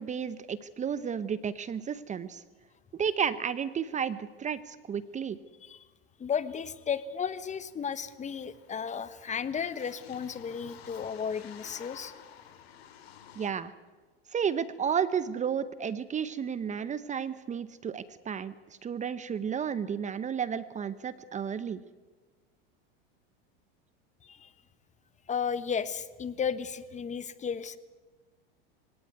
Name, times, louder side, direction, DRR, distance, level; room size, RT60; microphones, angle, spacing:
voice 1, 0.0-2.4 2.9-5.4 13.4-13.7 14.3-18.5 18.8-21.8, right 7 dB, 25° right, 15 dB, 0.9 m, -32 dB
voice 2, 6.2-12.1 24.2-24.5 25.3-27.8, left 7 dB, 25° left, 15 dB, 1.2 m, -34 dB
sound 1, 7.0-7.1 7.3-13.5, left 9 dB, 85° left, 2.7 m, -51 dB
23.0 x 17.5 x 9.5 m, 1.3 s
supercardioid pair, 110°, 30 cm